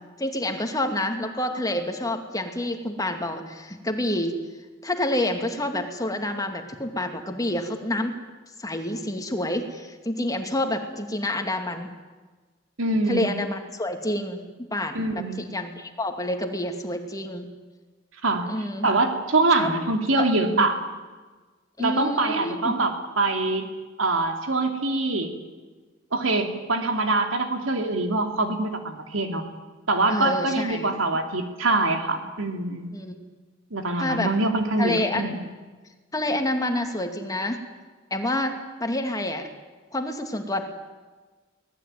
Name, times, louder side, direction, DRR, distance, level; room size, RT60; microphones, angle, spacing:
voice 1, 0.2-4.4 4.8-8.2 8.6-11.9 13.1-14.4 14.7-17.5 18.5-18.9 19.6-19.8 20.2-20.6 21.8-22.8 30.1-30.9 32.9-33.2 34.0-34.3 34.8-35.4 36.1-37.6 38.1-39.5 39.9-40.6, left 1 dB, 20° left, 5 dB, 2.4 m, -28 dB
voice 2, 12.8-13.3 14.9-15.5 18.2-18.5 18.8-20.8 21.8-23.7 24.0-25.3 26.1-29.4 29.9-32.9 33.7-35.4, right 2 dB, 80° right, 5 dB, 3.1 m, -24 dB
24.5 x 18.5 x 9.3 m, 1.3 s
head